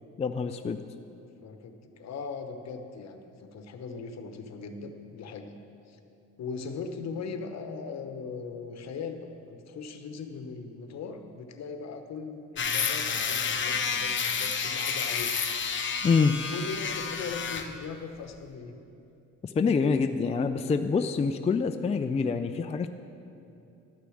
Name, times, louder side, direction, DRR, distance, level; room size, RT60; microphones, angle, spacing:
voice 1, 0.2-0.8 16.0-16.3 19.4-22.9, left 5 dB, 20° left, 7 dB, 0.4 m, -26 dB
voice 2, 1.4-5.5 5.9-6.0 6.4-15.4 16.5-18.8, left 5 dB, 60° left, 7 dB, 1.0 m, -39 dB
sound 1, 12.6-17.7, left 6 dB, 40° left, 0.8 m, -30 dB
12.5 x 6.7 x 6.4 m, 2.8 s
cardioid pair, 90°, 30 cm